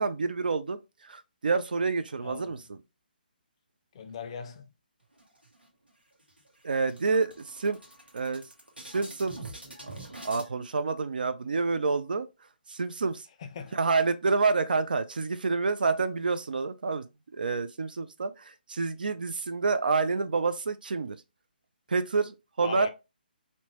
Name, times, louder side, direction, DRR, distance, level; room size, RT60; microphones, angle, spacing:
voice 1, 0.0-2.8 6.6-7.8 8.1-8.5 8.8-9.4 9.8-9.9 10.2-12.3 12.7-13.3 13.7-17.1 17.3-21.2 21.9-22.9, right 4 dB, 65° right, 0.3 m, -28 dB
voice 2, 2.2-2.6 3.9-4.7 13.4-13.8 22.6-22.9, left 6 dB, 35° left, 0.4 m, -38 dB
sound 1, 5.2-5.9 6.3-6.4 6.7-10.5, right 2 dB, 85° right, 0.9 m, -45 dB
2.8 x 2.1 x 2.8 m
figure-of-eight pair, 140°, 5 cm